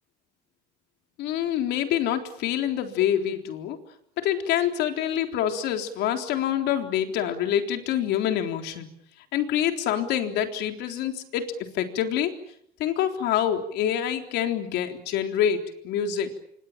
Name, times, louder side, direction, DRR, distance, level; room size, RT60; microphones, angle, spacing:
voice 1, 1.2-3.8 4.2-8.9 9.3-12.3 12.8-16.3, left 10 dB, 85° left, 5 dB, 3.8 m, -26 dB
27.5 x 25.0 x 7.5 m, 0.73 s
cardioid pair, 110°, 17 cm